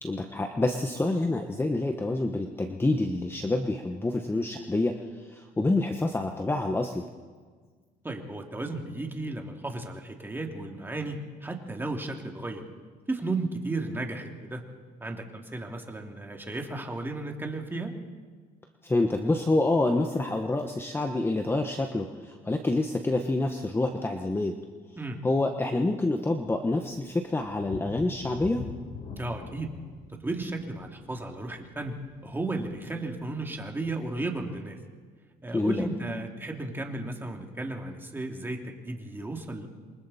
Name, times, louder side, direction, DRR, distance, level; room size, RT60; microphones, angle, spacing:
voice 1, 0.0-5.0 5.3-7.0 18.8-24.6 25.2-28.7 35.5-35.9, left 2 dB, 15° left, 4 dB, 1.2 m, -27 dB
voice 2, 8.0-12.7 13.1-14.6 15.0-17.9 25.0-25.2 29.2-29.7 30.2-32.0 32.2-34.8 35.4-39.7, right 2 dB, 10° right, 2 dB, 2.8 m, -34 dB
sound 1, 27.5-33.0 33.4-33.6 34.1-34.2, left 5 dB, 50° left, 3.4 m, -42 dB
28.0 x 23.5 x 4.3 m, 1.5 s
cardioid pair, 110°, 17 cm